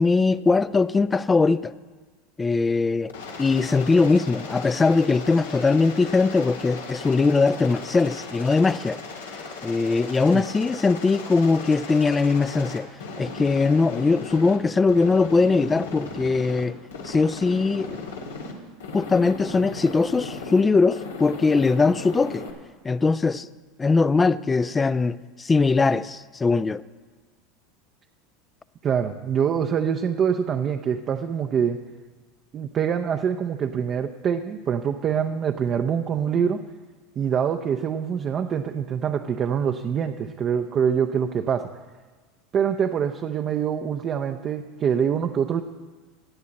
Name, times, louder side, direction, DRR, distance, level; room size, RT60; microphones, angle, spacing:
voice 1, 0.0-1.7 2.4-3.1 3.4-9.0 9.6-12.9 13.2-16.8 17.0-18.0 18.9-22.5 22.8-23.5 23.8-26.8, left 4 dB, 20° left, 0.4 m, -21 dB
Aircraft, 3.1-14.6 14.9-16.6 16.9-18.5 18.8-20.6 20.9-22.5, left 3 dB, 90° left, 1.8 m, -37 dB
voice 2, 28.8-31.8 32.5-36.6 37.2-41.7 42.5-45.6, right 7 dB, 40° right, 0.6 m, -25 dB
17.0 x 9.5 x 4.1 m
hypercardioid pair, 85°, 0 cm